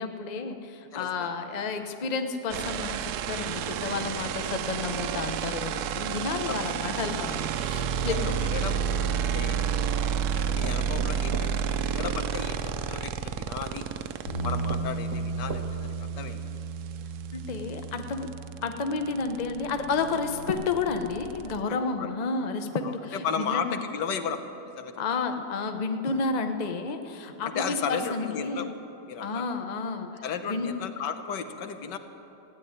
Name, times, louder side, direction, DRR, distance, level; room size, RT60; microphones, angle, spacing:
voice 1, 0.0-8.4 9.1-9.2 17.3-18.3 18.6-23.8 25.0-28.7 29.2-30.1 30.5-30.7, left 4 dB, 35° left, 6 dB, 0.7 m, -31 dB
voice 2, 0.9-1.3 6.5-7.0 7.7-9.6 10.1-13.9 14.4-16.5 22.0-22.1 22.8-24.4 24.8-25.2 27.4-28.7 29.1-29.4 30.2-32.0, left 6 dB, 85° left, 8 dB, 1.6 m, -35 dB
sound 1, 2.5-14.8 16.9-17.0 17.2-21.6, right 8 dB, 70° right, 1.1 m, -30 dB
sound 2, 9.0-9.8 10.6-12.6 13.6-13.7 14.2-14.3 14.7-16.0 16.5-16.6 17.0-17.1, right 4 dB, 45° right, 0.8 m, -40 dB
Bass guitar, 14.3-20.5, right 4 dB, 60° left, 3.0 m, -35 dB
15.5 x 9.2 x 9.7 m, 3.0 s
omnidirectional pair, 1.8 m